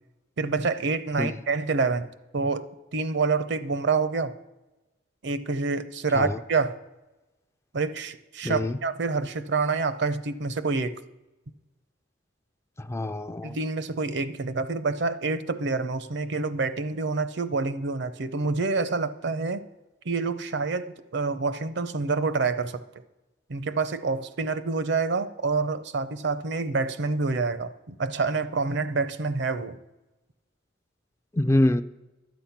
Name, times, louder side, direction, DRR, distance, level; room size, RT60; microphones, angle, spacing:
voice 1, 0.4-2.1 2.3-4.3 5.2-6.8 7.7-11.0 13.4-19.6 20.0-22.8 23.5-29.8, right 4 dB, 65° right, 0.7 m, -27 dB
voice 2, 8.4-8.8 12.9-13.6 31.3-31.8, left 1 dB, 15° left, 0.4 m, -24 dB
11.5 x 8.6 x 5.8 m
head